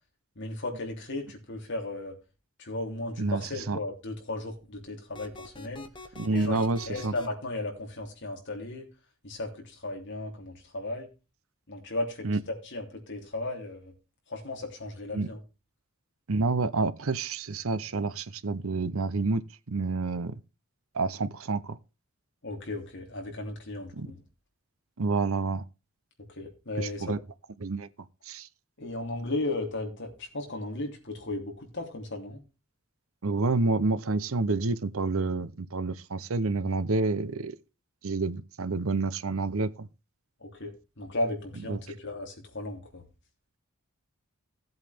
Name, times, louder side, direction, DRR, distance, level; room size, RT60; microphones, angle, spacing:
voice 1, 0.3-2.1 2.6-5.9 6.3-6.6 6.9-8.9 9.2-11.1 11.7-13.9 14.3-15.4 22.4-24.2 26.4-27.2 28.8-32.4 40.4-43.1, left 2 dB, 55° left, 3.3 m, -35 dB
sound 1, 5.1-7.3, left 3 dB, 20° left, 1.3 m, -44 dB
voice 2, 6.2-7.1 12.2-12.4 15.1-15.3 16.3-20.3 20.9-21.8 23.9-24.1 25.0-25.6 26.8-27.2 27.6-27.9 28.3-28.5 33.2-37.5 38.0-39.9 41.7-41.8, right 3 dB, 65° right, 0.7 m, -28 dB
16.5 x 8.0 x 3.5 m
head